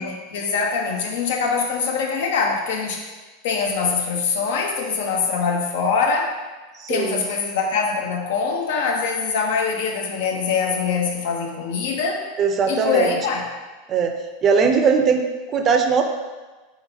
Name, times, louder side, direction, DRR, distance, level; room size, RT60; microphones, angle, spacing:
voice 1, 0.0-3.1 3.4-6.4 6.9-12.2 12.7-13.5, left 5 dB, 65° left, 1 dB, 0.7 m, -23 dB
voice 2, 6.8-7.2 12.4-13.2 13.9-14.1 14.4-16.0, right 5 dB, 35° right, 5 dB, 0.5 m, -19 dB
4.6 x 3.8 x 2.6 m, 1.2 s
hypercardioid pair, 85°, 0 cm